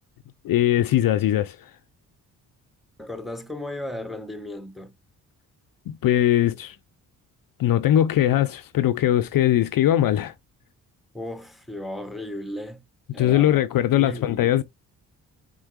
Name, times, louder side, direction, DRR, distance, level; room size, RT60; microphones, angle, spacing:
voice 1, 0.4-1.6 5.9-6.8 7.6-10.3 13.2-14.6, left 12 dB, 55° left, 0.5 m, -20 dB
voice 2, 3.0-4.9 11.1-12.8 13.1-13.5 13.9-14.5, left 1 dB, ahead, 0.9 m, -35 dB
4.4 x 3.8 x 2.4 m
hypercardioid pair, 45°, 42 cm